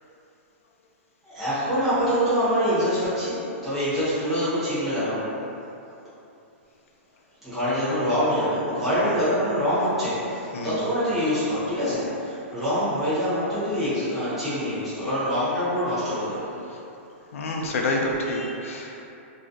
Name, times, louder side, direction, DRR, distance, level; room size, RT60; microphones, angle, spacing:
voice 1, 1.2-5.3 7.4-16.5 17.6-17.8 18.8-19.0, equal, ahead, -16 dB, 0.6 m, -25 dB
voice 2, 17.3-19.0, left 1 dB, 85° left, 0 dB, 0.4 m, -28 dB
2.4 x 2.1 x 2.4 m, 2.8 s
hypercardioid pair, 180°, 7 cm